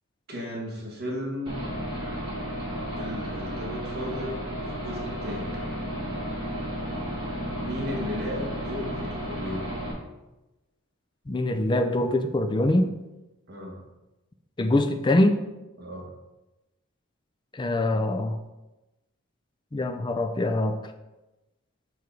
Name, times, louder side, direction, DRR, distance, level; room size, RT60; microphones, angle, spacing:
voice 1, 0.3-1.6 2.9-5.6 7.6-9.7 13.5-13.8 15.8-16.1, left 1 dB, 50° right, -2 dB, 1.4 m, -35 dB
Aircraft / Engine, 1.5-9.9, equal, 25° right, 1.7 m, -33 dB
voice 2, 11.3-12.9 14.6-15.4 17.5-18.4 19.7-20.8, left 1 dB, 20° left, 7 dB, 0.4 m, -23 dB
5.3 x 4.7 x 4.6 m, 1.0 s
head